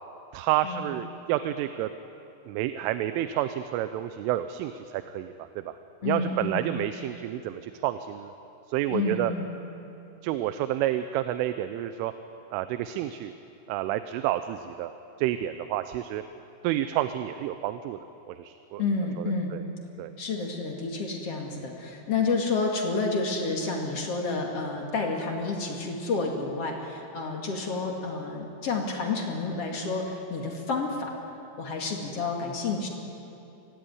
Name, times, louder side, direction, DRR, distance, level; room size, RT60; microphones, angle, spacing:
voice 1, 0.3-1.9 2.5-5.7 6.0-8.3 8.7-9.3 10.2-12.1 12.5-13.3 13.7-14.9 15.2-16.2 16.6-18.8 19.2-19.6 20.0-20.1, right 13 dB, 85° right, 10 dB, 3.2 m, -29 dB
voice 2, 6.0-6.7 8.9-9.5 18.8-19.5 20.2-31.1 31.6-32.9, left 3 dB, 45° left, 1 dB, 2.2 m, -30 dB
25.0 x 17.5 x 9.5 m, 2.9 s
omnidirectional pair, 5.6 m